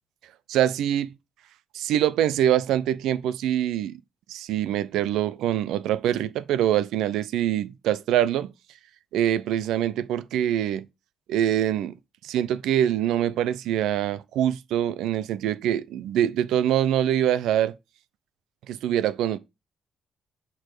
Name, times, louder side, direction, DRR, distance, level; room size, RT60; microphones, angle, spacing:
voice 1, 0.5-1.1 1.7-4.0 4.3-8.5 9.1-10.8 11.3-11.9 12.2-17.7 18.7-19.4, right 11 dB, 85° right, 0.6 m, -24 dB
8.8 x 4.1 x 4.8 m
cardioid pair, 90°, 0 cm